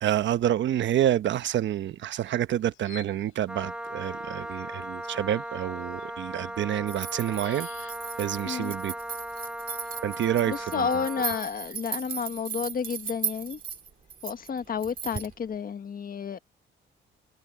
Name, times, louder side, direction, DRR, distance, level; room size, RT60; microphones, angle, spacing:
voice 1, 0.0-7.7 8.2-8.9 10.0-10.9, right 11 dB, 70° right, 1.1 m, -28 dB
sound 1, 0.6-15.7, left 15 dB, 90° left, 7.6 m, -58 dB
Wind instrument woodwind instrument, 3.5-11.5, right 1 dB, 5° right, 0.6 m, -37 dB
sound 2, 6.9-15.3, right 7 dB, 45° right, 2.2 m, -37 dB
voice 2, 10.5-13.6 14.2-16.4, left 6 dB, 45° left, 1.7 m, -31 dB
cardioid pair, 90°, 20 cm